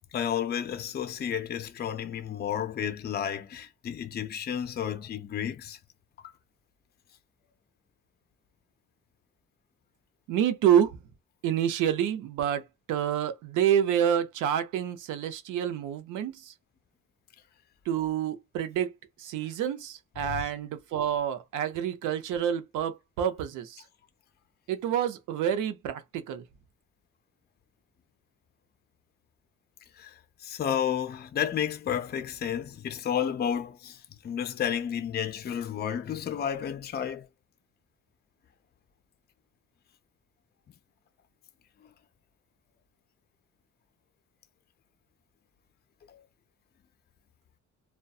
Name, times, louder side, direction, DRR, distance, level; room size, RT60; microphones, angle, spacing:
voice 1, 0.1-5.8 6.2-6.3 20.3-20.4 30.0-37.3 46.1-46.2, left 9 dB, 35° left, 0.4 m, -32 dB
voice 2, 10.3-11.0 11.4-12.6 12.9-16.5 17.9-18.9 19.2-23.8 24.7-26.4, right 9 dB, 90° right, 0.5 m, -28 dB
2.6 x 2.2 x 2.3 m
cardioid pair, 90°, 30 cm